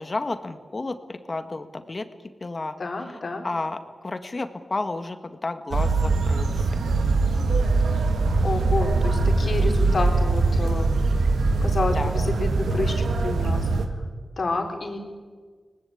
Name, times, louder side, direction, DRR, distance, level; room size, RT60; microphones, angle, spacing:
voice 1, 0.0-2.1 2.4-6.8 11.9-12.1, left 2 dB, 45° left, 9 dB, 2.0 m, -32 dB
voice 2, 2.8-3.5 8.4-11.0 11.6-13.7 14.4-15.0, left 3 dB, 65° left, 3 dB, 3.8 m, -29 dB
sound 1, 5.7-13.9, right 3 dB, 90° right, 1.7 m, -22 dB
22.5 x 19.0 x 8.7 m, 1.6 s
cardioid pair, 45°, 0 cm